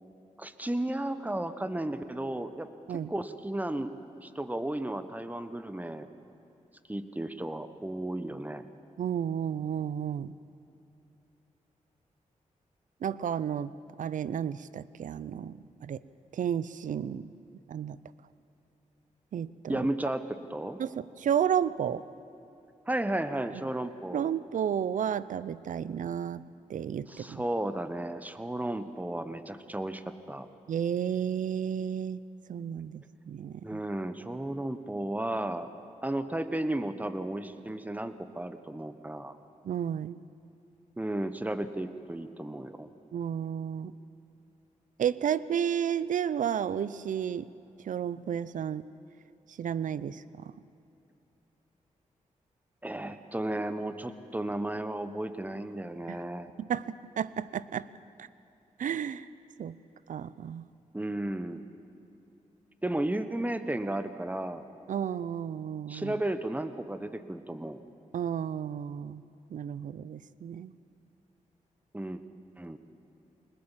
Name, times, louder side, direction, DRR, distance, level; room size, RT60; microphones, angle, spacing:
voice 1, 0.4-3.9 4.2-6.1 6.9-8.6 19.7-20.8 22.9-24.3 27.1-30.5 33.6-35.7 36.0-39.3 41.0-42.9 52.8-56.5 60.9-61.6 62.8-64.6 65.9-67.8 71.9-72.2 72.6-72.8, right 1 dB, 10° right, 10 dB, 1.3 m, -34 dB
voice 2, 9.0-10.3 13.0-13.7 14.0-15.6 15.8-16.0 16.3-17.3 17.7-18.0 19.3-19.9 20.8-22.0 24.1-26.4 26.7-27.4 30.7-32.2 32.5-33.6 39.6-40.2 43.1-43.9 45.0-47.5 47.9-48.8 49.6-50.2 56.1-56.2 56.6-56.9 57.2-57.9 58.8-59.3 59.6-59.8 60.1-60.7 64.9-66.1 68.1-69.2 69.5-70.7, right 8 dB, 75° right, 17 dB, 0.6 m, -32 dB
21.5 x 20.0 x 7.5 m, 2.8 s
cardioid pair, 65°, 14 cm